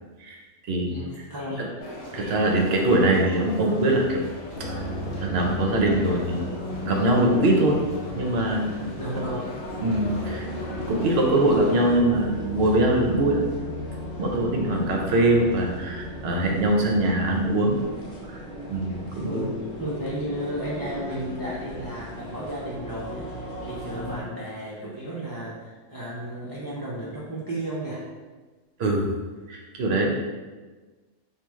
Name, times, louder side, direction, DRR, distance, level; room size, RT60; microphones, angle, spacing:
voice 1, 0.8-1.8 9.0-9.5 14.6-14.8 19.2-19.5 19.8-28.0, right 1 dB, 35° right, -8 dB, 0.3 m, -33 dB
sound 1, 1.8-12.0, left 2 dB, 45° left, 0.7 m, -40 dB
voice 2, 2.1-4.2 4.7-4.8 5.2-6.4 6.8-7.8 8.1-8.9 9.8-13.4 14.2-17.9 18.7-19.5 28.8-29.1 29.5-30.1, right 1 dB, 65° right, 0 dB, 0.7 m, -22 dB
sound 2, 4.5-24.2, left 1 dB, 65° left, 1.0 m, -35 dB
3.0 x 2.4 x 3.5 m, 1.3 s
omnidirectional pair, 1.3 m